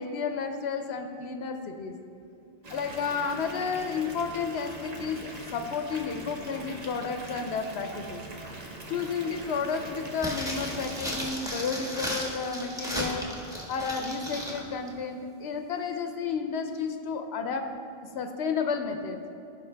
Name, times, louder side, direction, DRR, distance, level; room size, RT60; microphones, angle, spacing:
voice 1, 0.0-1.9 2.7-8.2 8.6-13.4 13.7-17.7 18.1-19.2, left 5 dB, 85° left, 7 dB, 0.9 m, -32 dB
Water tap faucet / Bathtub (filling or washing) / Fill (with liquid), 2.6-11.3, right 1 dB, 40° right, 1.0 m, -42 dB
sound 1, 10.2-14.6 14.9-15.0, equal, 5° right, 1.4 m, -35 dB
16.0 x 5.7 x 3.3 m, 2.7 s
omnidirectional pair, 1.1 m